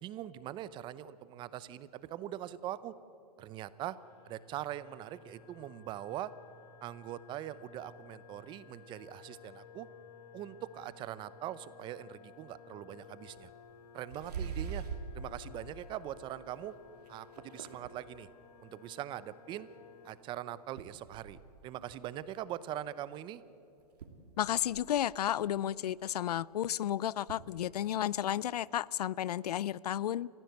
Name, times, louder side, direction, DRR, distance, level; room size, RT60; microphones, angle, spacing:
voice 1, 0.0-2.9 3.4-4.0 4.2-6.3 6.8-9.9 10.3-13.5 13.9-14.8 15.1-16.7 17.1-18.3 18.6-19.7 20.0-23.4, right 12 dB, 25° right, 16 dB, 0.7 m, -42 dB
sound 1, 3.9-20.1, left 7 dB, 40° left, 5.1 m, -56 dB
sound 2, 12.9-13.0 13.4-13.6 14.1-15.1 15.7-16.1 16.6-16.7 17.0-18.0 19.9-20.0 20.8-21.5 23.0-23.1 23.5-23.6 23.8-25.0 26.7-26.8 27.3-27.7, right 6 dB, 80° right, 2.8 m, -43 dB
voice 2, 24.4-30.3, left 11 dB, 80° left, 23 dB, 0.5 m, -32 dB
29.5 x 15.5 x 8.0 m, 2.9 s
hypercardioid pair, 140°, 20 cm